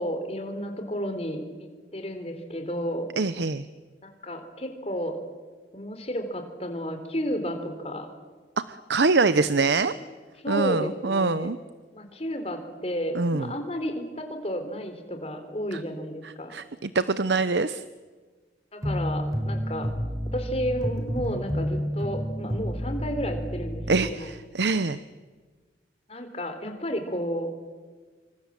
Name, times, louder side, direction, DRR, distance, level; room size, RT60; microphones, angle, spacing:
voice 1, 0.0-3.1 4.0-5.2 5.7-8.1 9.9-10.0 10.4-11.5 11.9-16.6 18.7-19.9 20.3-24.3 26.1-27.5, equal, 35° left, 7 dB, 3.8 m, -32 dB
voice 2, 3.2-3.7 8.7-9.9 10.5-11.6 13.1-13.5 15.7-15.8 16.2-17.8 23.9-25.0, right 3 dB, 75° right, 14 dB, 0.8 m, -24 dB
sound 1, 18.8-24.1, equal, 20° right, 3.9 m, -30 dB
27.0 x 24.5 x 7.6 m, 1.4 s
head